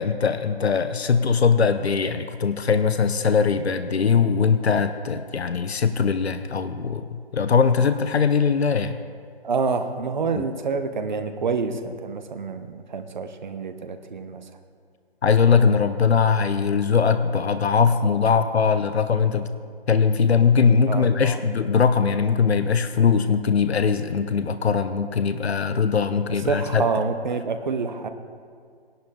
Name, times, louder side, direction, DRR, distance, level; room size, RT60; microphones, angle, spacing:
voice 1, 0.0-9.0 10.3-10.4 15.2-19.5 19.9-26.9, left 6 dB, 80° left, 10 dB, 0.8 m, -21 dB
voice 2, 9.4-14.4 20.5-20.6 20.9-21.4 26.5-28.1, right 4 dB, 45° right, 8 dB, 1.0 m, -27 dB
17.5 x 11.0 x 3.7 m, 2.1 s
hypercardioid pair, 160°, 32 cm